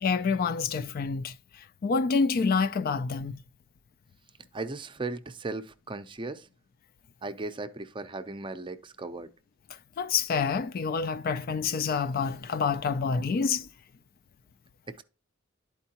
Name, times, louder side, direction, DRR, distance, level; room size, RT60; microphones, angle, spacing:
voice 1, 0.0-1.3 1.8-3.3 10.0-13.7, left 5 dB, 45° left, 0.3 m, -27 dB
voice 2, 4.5-6.5 7.2-9.3 14.9-15.0, right 3 dB, 25° right, 0.5 m, -37 dB
11.5 x 4.5 x 2.8 m
head